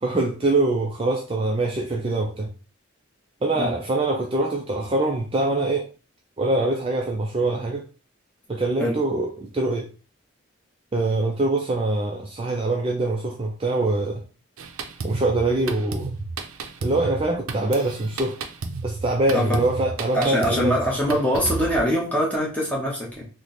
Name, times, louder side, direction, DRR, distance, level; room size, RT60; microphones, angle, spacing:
voice 1, 0.0-2.5 3.4-5.9 6.4-7.8 8.5-9.9 10.9-14.2 15.0-16.1 16.8-18.4 18.8-20.8, right 2 dB, 25° right, 0.3 m, -24 dB
Drum kit, 14.6-21.8, right 3 dB, 90° right, 0.5 m, -33 dB
voice 2, 20.1-23.2, equal, 5° left, 0.9 m, -23 dB
3.1 x 2.1 x 4.0 m
head